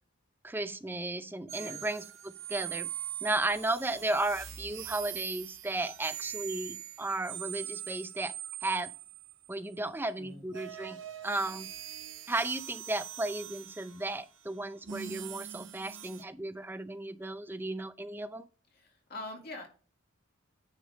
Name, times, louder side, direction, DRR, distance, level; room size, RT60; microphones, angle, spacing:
voice 1, 0.4-2.9 3.2-8.3 8.6-8.9 9.5-11.0 11.2-11.7 12.3-18.4, right 2 dB, 10° right, 0.4 m, -34 dB
sound 1, 1.5-9.8 10.5-16.2, right 11 dB, 60° right, 0.8 m, -43 dB
voice 2, 1.6-1.9 10.2-10.5 18.7-19.7, left 2 dB, 45° left, 1.9 m, -44 dB
9.6 x 3.5 x 5.1 m
head